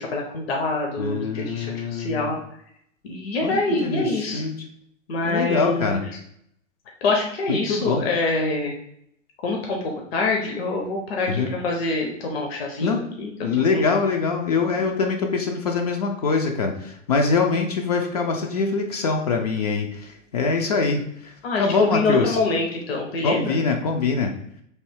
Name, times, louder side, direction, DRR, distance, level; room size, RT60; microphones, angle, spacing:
voice 1, 0.0-2.4 3.0-4.5 5.1-6.0 7.0-8.7 9.4-9.8 10.1-13.3 13.7-13.8 21.4-23.5, left 2 dB, 50° left, 0 dB, 0.8 m, -25 dB
voice 2, 1.0-2.3 3.4-4.5 5.2-6.0 7.5-8.0 11.3-11.5 12.8-13.0 13.4-21.3 21.6-22.4 23.2-24.3, left 4 dB, 35° left, 2 dB, 0.4 m, -24 dB
3.2 x 2.6 x 4.5 m, 0.71 s
figure-of-eight pair, 100°, 38 cm